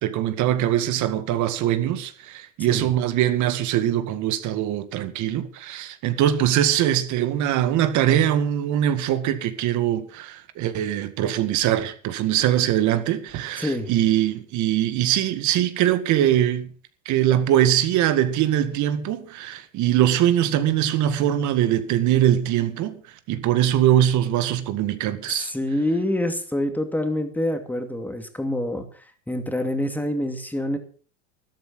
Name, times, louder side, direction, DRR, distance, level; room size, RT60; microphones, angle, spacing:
voice 1, 0.0-16.7 17.1-23.0 23.3-25.5, right 11 dB, 50° right, 2.0 m, -22 dB
voice 2, 13.6-13.9 25.3-30.8, left 1 dB, 5° left, 2.5 m, -26 dB
13.0 x 12.0 x 6.2 m
supercardioid pair, 115°, 38 cm